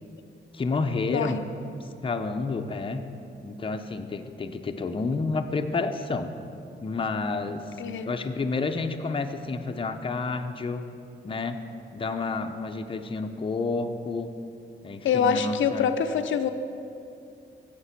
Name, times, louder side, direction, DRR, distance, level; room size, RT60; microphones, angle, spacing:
voice 1, 0.5-1.4 1.8-3.1 3.4-6.3 6.8-7.8 8.1-10.8 11.2-11.6 11.9-14.3 14.8-15.9, left 3 dB, 25° left, 6 dB, 0.6 m, -30 dB
voice 2, 1.1-1.4 7.8-8.1 15.0-16.5, left 7 dB, 85° left, 8 dB, 0.5 m, -25 dB
15.0 x 5.2 x 5.8 m, 2.6 s
wide cardioid pair, 125°, 20 cm